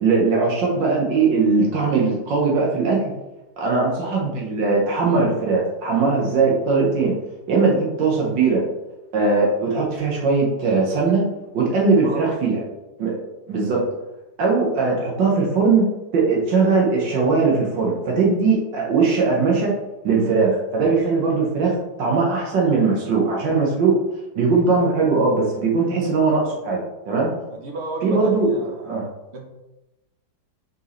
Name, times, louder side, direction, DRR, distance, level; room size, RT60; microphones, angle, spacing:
voice 1, 0.0-3.0 3.6-7.1 7.5-8.6 9.1-11.2 11.5-12.6 13.0-13.2 13.5-13.9 14.4-15.9 16.1-19.7 20.0-24.1 24.4-27.3 28.0-28.5 28.9-29.1, right 4 dB, 70° right, -2 dB, 1.7 m, -20 dB
voice 2, 12.0-12.7 27.5-29.5, right 2 dB, 40° right, 0 dB, 1.1 m, -33 dB
6.1 x 4.8 x 3.2 m, 1.0 s
omnidirectional pair, 2.0 m